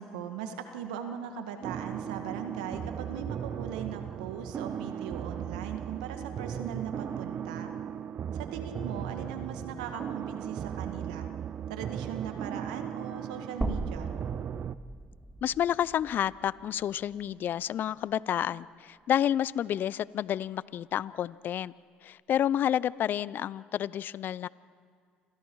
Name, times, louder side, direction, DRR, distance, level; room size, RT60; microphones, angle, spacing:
voice 1, 0.0-7.7 8.3-11.3 11.7-14.1, right 8 dB, 85° right, 6 dB, 1.8 m, -39 dB
sound 1, 1.6-14.7, right 9 dB, 50° right, 0.6 m, -37 dB
sound 2, 13.6-17.8 18.1-18.2 19.6-19.7, right 1 dB, 10° right, 2.0 m, -39 dB
voice 2, 15.4-21.7 22.0-24.5, left 10 dB, 55° left, 21 dB, 0.5 m, -30 dB
28.5 x 26.5 x 4.7 m, 2.1 s
hypercardioid pair, 65°, 4 cm